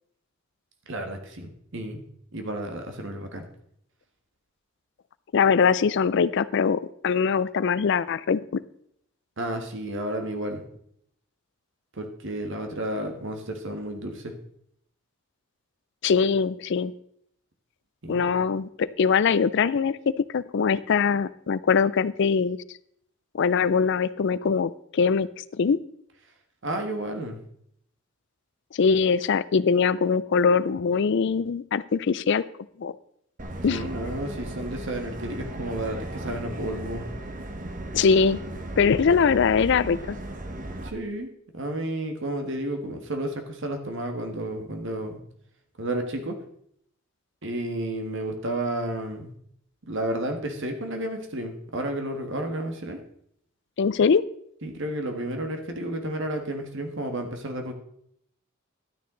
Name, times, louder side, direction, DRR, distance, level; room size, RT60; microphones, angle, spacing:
voice 1, 0.9-2.1 2.3-3.4 9.4-10.6 11.9-14.3 18.0-18.3 26.6-27.4 33.7-37.0 40.8-41.3 41.5-45.2 45.8-46.4 47.4-49.3 49.9-53.0 54.6-57.7, right 1 dB, 60° right, 5 dB, 1.7 m, -31 dB
voice 2, 5.3-8.6 16.0-16.9 18.1-22.6 23.3-25.3 25.6-25.8 28.7-32.4 32.8-32.9 33.6-33.9 37.9-38.4 38.8-40.2 53.8-54.2, left 5 dB, 55° left, 17 dB, 0.4 m, -22 dB
Subway metro underground, 33.4-40.9, right 1 dB, 40° right, 1.1 m, -36 dB
12.0 x 9.5 x 3.9 m, 0.69 s
head